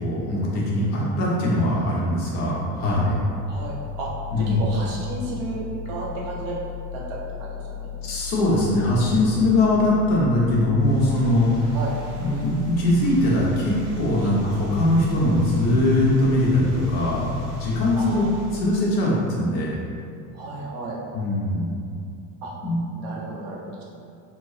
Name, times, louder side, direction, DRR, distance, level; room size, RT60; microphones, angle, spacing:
voice 1, 0.0-3.2 4.3-4.6 8.0-11.7 12.2-18.2 18.5-19.7 21.1-21.7 22.6-22.8, left 1 dB, 70° left, -5 dB, 1.2 m, -21 dB
sound 1, 2.8-18.6, left 8 dB, 20° left, 0.5 m, -36 dB
voice 2, 3.5-4.1 4.4-6.6 6.9-7.9 11.7-11.9 14.2-14.3 17.9-18.4 20.3-21.0 22.4-22.5 22.9-23.8, right 3 dB, 70° right, -4 dB, 1.0 m, -33 dB
sound 2, 10.8-18.7, right 1 dB, 90° right, 1.4 m, -44 dB
3.3 x 2.7 x 3.3 m, 2.4 s
hypercardioid pair, 70°, 48 cm